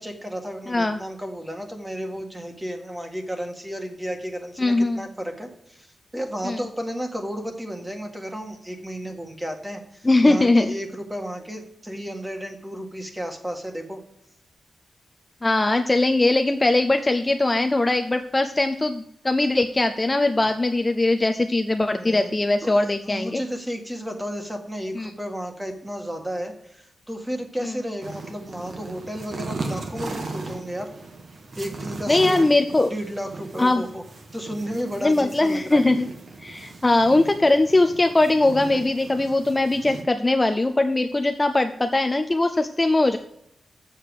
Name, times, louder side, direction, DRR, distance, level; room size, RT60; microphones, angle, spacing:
voice 1, 0.0-5.9 6.1-14.0 22.0-22.3 22.6-30.9 31.5-34.0 34.3-35.8, equal, 10° right, 4 dB, 1.7 m, -33 dB
voice 2, 4.6-5.1 6.4-6.6 10.0-10.7 15.4-23.4 25.0-25.1 32.1-32.9 33.6-33.8 35.0-36.1 36.4-43.2, left 2 dB, 20° left, 7 dB, 0.5 m, -20 dB
sound 1, 28.0-40.0, right 3 dB, 60° right, 1.5 m, -37 dB
7.5 x 6.6 x 6.5 m, 0.78 s
wide cardioid pair, 95°, 0 cm